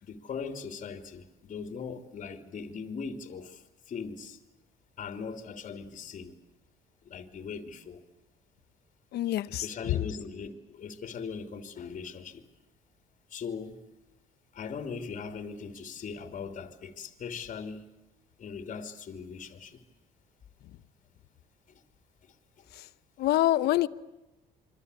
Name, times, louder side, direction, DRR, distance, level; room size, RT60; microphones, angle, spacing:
voice 1, 0.0-4.4 5.0-6.4 7.0-8.0 9.5-12.4 13.3-13.8 14.5-17.8 18.4-19.8 22.2-22.6, left 5 dB, 50° left, 3.2 m, -40 dB
voice 2, 9.1-10.1 20.6-20.8 22.7-22.9 23.2-23.9, left 14 dB, 75° left, 1.0 m, -27 dB
28.0 x 24.5 x 8.4 m
cardioid pair, 110°, 17 cm